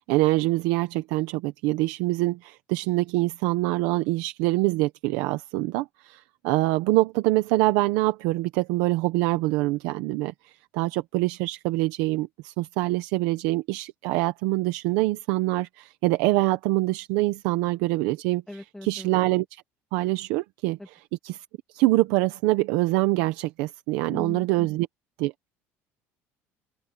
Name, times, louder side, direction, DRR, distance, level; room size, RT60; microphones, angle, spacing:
voice 1, 0.0-18.4 18.8-19.6 19.9-20.8 21.2-21.4 21.7-24.9 25.2-25.3, right 19 dB, 85° right, 1.1 m, -25 dB
voice 2, 18.5-19.1 20.8-20.9 24.1-24.7, left 1 dB, 5° left, 2.5 m, -39 dB
cardioid pair, 150°, 6 cm